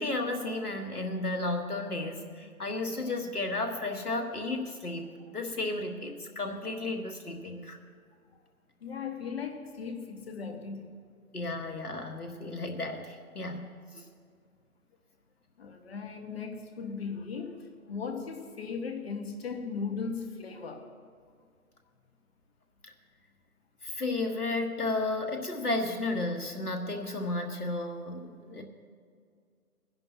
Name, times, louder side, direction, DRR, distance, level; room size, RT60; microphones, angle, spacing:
voice 1, 0.0-7.8 11.3-13.7 13.9-14.1 22.8-22.9 23.8-28.6, left 2 dB, 90° left, 4 dB, 1.6 m, -33 dB
voice 2, 8.8-10.9 15.6-20.9, left 5 dB, 45° left, 6 dB, 1.3 m, -37 dB
21.0 x 10.5 x 2.9 m, 2.1 s
figure-of-eight pair, 145°, 44 cm